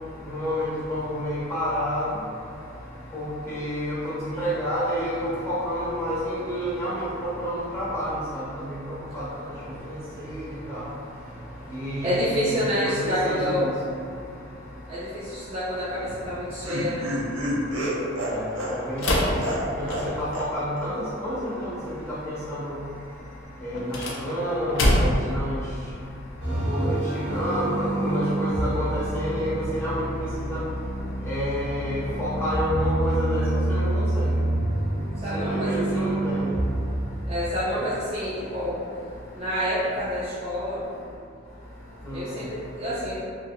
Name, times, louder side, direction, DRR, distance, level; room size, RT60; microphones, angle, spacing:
voice 1, 0.3-2.0 3.1-8.4 8.7-8.8 9.1-9.2 9.9-10.0 10.3-10.4 10.7-10.9 11.7-13.7 18.3-18.4 18.9-19.4 19.8-20.9 21.2-21.7 22.2-22.7 23.6-25.6 26.6-30.0 30.4-30.6 31.2-33.4 33.7-34.3 35.3-36.5 42.1-42.3, equal, 15° left, -10 dB, 0.7 m, -29 dB
voice 2, 2.5-3.2 6.6-6.8 9.1-9.2 9.7-13.8 14.9-17.2 35.2-36.1 36.8-40.9 42.1-43.2, equal, 30° right, -10 dB, 0.4 m, -29 dB
Laughter, 16.0-20.1 20.3-20.5 20.8-20.9, equal, 90° right, 0.6 m, -29 dB
sound 1, 19.0-20.4 23.7-25.4, left 1 dB, 80° left, 0.5 m, -24 dB
sound 2, 26.4-37.0, right 1 dB, 60° right, 0.9 m, -27 dB
2.9 x 2.6 x 2.6 m, 2.4 s
head